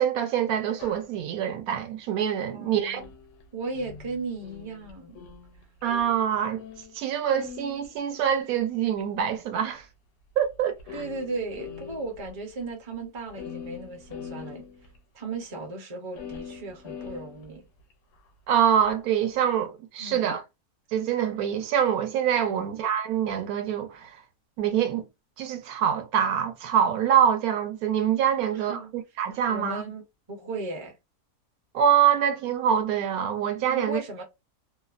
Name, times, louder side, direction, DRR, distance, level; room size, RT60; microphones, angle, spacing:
voice 1, 0.0-3.0 5.8-6.6 6.9-9.9 10.4-10.7 18.5-20.4 20.9-24.2 24.6-25.0 25.4-28.8 29.2-29.8 31.7-34.0, right 9 dB, 75° right, 1.0 m, -25 dB
sound 1, 0.8-1.1 3.0-7.1 7.3-8.9 9.8-9.9 10.4-10.5 10.8-12.3 12.6-12.7 12.9-13.0 13.3-15.0 16.2-17.9 18.5-18.9, left 6 dB, 85° left, 1.1 m, -43 dB
voice 2, 2.5-3.1 3.5-5.3 10.9-14.6 15.1-17.6 20.0-20.4 22.5-22.7 28.5-28.9 29.5-30.0 30.3-30.9 33.7-34.2, right 3 dB, 35° right, 0.5 m, -36 dB
2.8 x 2.0 x 2.4 m
omnidirectional pair, 1.6 m